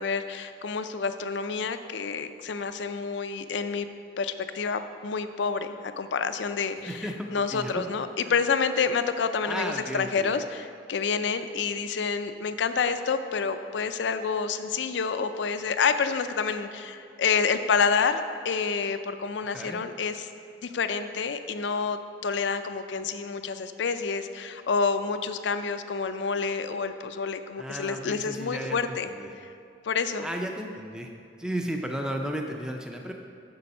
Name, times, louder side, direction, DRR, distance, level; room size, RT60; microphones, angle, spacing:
voice 1, 0.0-3.9 4.2-20.3 20.6-29.1 29.8-30.3, left 5 dB, 70° left, 10 dB, 0.5 m, -28 dB
voice 2, 6.9-7.7 8.2-8.3 9.4-10.3 19.4-19.8 27.6-29.3 30.2-31.1 31.4-33.1, right 1 dB, 5° right, 2 dB, 0.4 m, -34 dB
7.1 x 6.8 x 5.4 m, 2.5 s
head